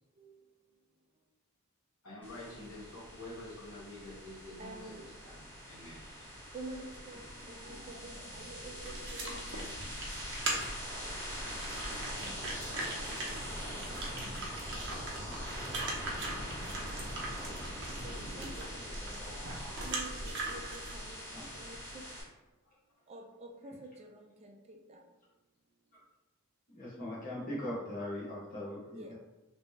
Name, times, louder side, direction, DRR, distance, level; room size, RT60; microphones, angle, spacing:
voice 1, 2.0-6.3, left 1 dB, 70° left, -8 dB, 1.4 m, -48 dB
sound 1, 2.2-22.2, equal, 10° left, 1.2 m, -43 dB
voice 2, 4.6-5.1 6.5-9.4 14.0-14.1 18.0-21.2 21.5-22.0 23.1-25.0 27.7-27.8 28.1-28.5 28.9-29.1, right 2 dB, 30° right, 2 dB, 0.5 m, -49 dB
sound 2, 8.8-21.0, right 2 dB, 60° right, 0.7 m, -41 dB
voice 3, 26.7-29.0, left 1 dB, 40° left, -8 dB, 1.4 m, -40 dB
3.3 x 3.2 x 2.8 m, 1.1 s
head